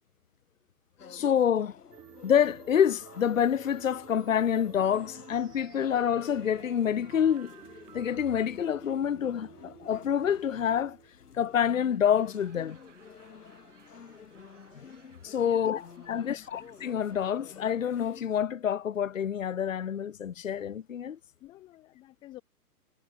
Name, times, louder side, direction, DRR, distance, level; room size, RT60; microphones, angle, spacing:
sound 1, 1.0-18.4, left 6 dB, 75° left, 4.4 m, -51 dB
voice 1, 1.1-1.8 2.2-7.6 7.9-11.0 11.3-12.8 14.7-14.8 15.2-21.2, left 8 dB, 55° left, 1.0 m, -27 dB
sound 2, 1.9-11.2, right 16 dB, 10° right, 2.8 m, -52 dB
Laughter / Crowd, 11.9-18.0, right 7 dB, 50° right, 5.0 m, -61 dB
voice 2, 16.0-16.5 21.4-22.4, left 15 dB, 10° left, 4.2 m, -50 dB
hypercardioid pair, 180°, 46 cm